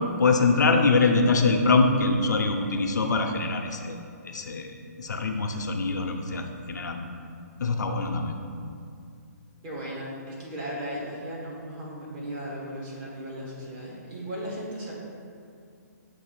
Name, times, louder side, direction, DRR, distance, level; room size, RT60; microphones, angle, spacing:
voice 1, 0.2-4.0 4.2-4.7 5.0-7.0 7.6-8.3, left 3 dB, 85° left, 4 dB, 0.7 m, -23 dB
voice 2, 9.6-14.9, equal, 30° right, -5 dB, 1.5 m, -36 dB
6.9 x 2.7 x 5.7 m, 2.4 s
hypercardioid pair, 155°, 9 cm